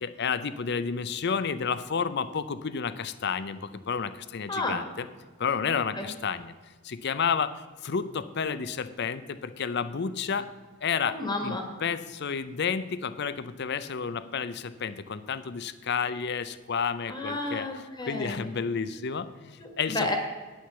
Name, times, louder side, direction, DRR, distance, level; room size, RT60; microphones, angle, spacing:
voice 1, 0.0-5.1 5.4-6.5 6.8-7.5 7.8-10.5 10.8-17.7 18.0-20.1, left 6 dB, 55° left, 14 dB, 0.5 m, -31 dB
voice 2, 5.7-6.1 11.1-11.7 17.1-18.4 19.6-20.2, left 2 dB, 20° left, 3 dB, 1.6 m, -32 dB
9.8 x 6.3 x 6.9 m, 1.4 s
head